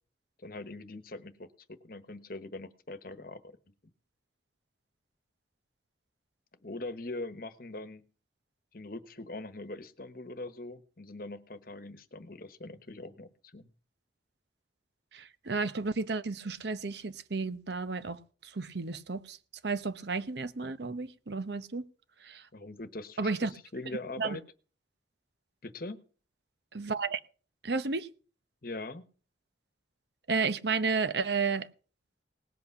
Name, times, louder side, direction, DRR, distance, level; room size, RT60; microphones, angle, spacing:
voice 1, 0.4-3.5 6.6-8.0 8.7-13.7 22.5-24.4 25.6-26.0 28.6-29.0, left 2 dB, 50° left, 1.1 m, -42 dB
voice 2, 15.1-18.2 18.6-19.4 19.6-21.8 22.2-22.4 23.2-23.5 24.2-24.4 26.7-27.2 27.6-28.1 30.3-31.7, right 4 dB, 65° right, 0.8 m, -32 dB
18.5 x 8.3 x 5.8 m
head